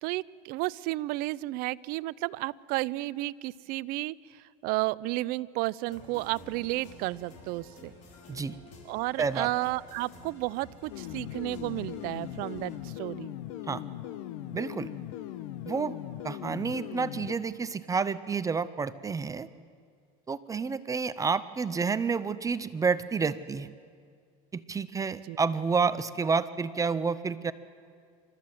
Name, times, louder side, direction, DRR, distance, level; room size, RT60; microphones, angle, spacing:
voice 1, 0.0-7.9 8.9-13.3 25.3-25.4, right 19 dB, 60° right, 20 dB, 0.6 m, -32 dB
sound 1, 5.9-12.8, left 3 dB, 45° left, 5.2 m, -51 dB
sound 2, 10.9-17.3, left 12 dB, 75° left, 1.0 m, -39 dB
voice 2, 14.5-14.9 15.7-16.0 16.2-19.5 20.3-23.7 24.5-27.5, right 5 dB, 20° right, 14 dB, 0.6 m, -29 dB
28.0 x 13.5 x 7.7 m, 2.1 s
supercardioid pair, 115°, 17 cm